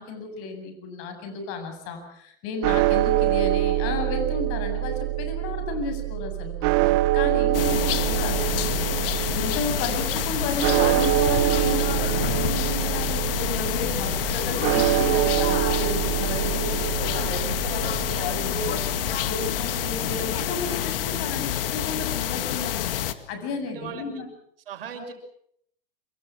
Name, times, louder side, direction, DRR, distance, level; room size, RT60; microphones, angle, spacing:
voice 1, 0.0-23.0 23.3-24.3, left 4 dB, 50° left, 7 dB, 8.0 m, -33 dB
sound 1, 2.6-20.9, right 15 dB, 50° right, 1.3 m, -25 dB
sound 2, 7.5-23.1, left 12 dB, 70° left, 2.1 m, -28 dB
voice 2, 23.6-24.1 24.7-25.1, right 7 dB, 70° right, 6 dB, 6.4 m, -39 dB
27.5 x 25.0 x 6.2 m, 0.68 s
hypercardioid pair, 105°, 29 cm